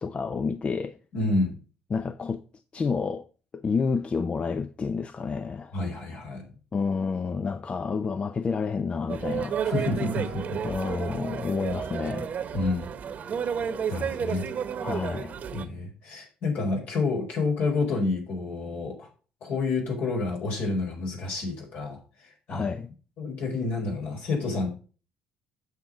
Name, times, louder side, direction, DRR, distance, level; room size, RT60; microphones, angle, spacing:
voice 1, 0.0-1.0 1.9-2.4 2.7-3.2 3.5-5.7 6.7-9.9 10.6-12.3 14.8-15.3 22.5-22.9, left 5 dB, 35° left, 0.7 m, -29 dB
voice 2, 1.1-1.6 5.7-6.5 9.7-10.6 12.5-12.9 13.9-14.5 15.5-19.1 19.4-22.7 23.2-24.7, left 3 dB, 70° left, 4.6 m, -29 dB
sound 1, 9.1-15.6, right 7 dB, 55° right, 1.1 m, -32 dB
8.2 x 6.0 x 5.2 m
supercardioid pair, 70°, 3 cm